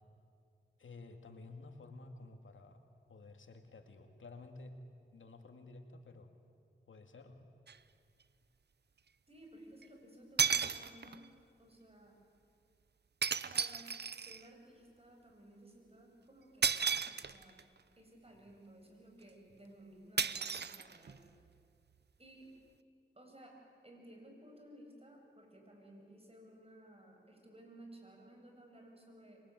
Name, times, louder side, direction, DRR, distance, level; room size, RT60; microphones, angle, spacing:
voice 1, 0.8-2.8 3.1-4.8 5.1-6.3 6.9-7.4, left 3 dB, 85° left, 5 dB, 2.4 m, -52 dB
sound 1, 7.7-7.8 9.8-9.9 10.4-11.3 13.2-14.5 16.6-17.6 20.2-21.3, right 6 dB, 60° right, 0.8 m, -34 dB
voice 2, 9.3-11.3 11.6-12.2 13.5-17.6 18.0-21.2 22.2-22.5 23.1-29.4, right 1 dB, 30° right, 2 dB, 7.7 m, -57 dB
27.5 x 23.0 x 9.3 m, 2.2 s
cardioid pair, 55°, 20 cm